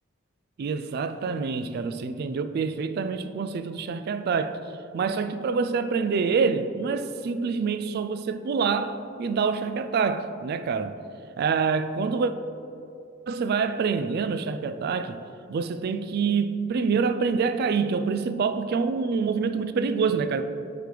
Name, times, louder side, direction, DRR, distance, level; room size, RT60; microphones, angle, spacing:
voice 1, 0.6-4.6 4.9-10.9 11.4-12.3 13.3-15.2 15.5-20.4, right 5 dB, 50° right, 0.3 m, -26 dB
7.7 x 5.2 x 3.3 m
head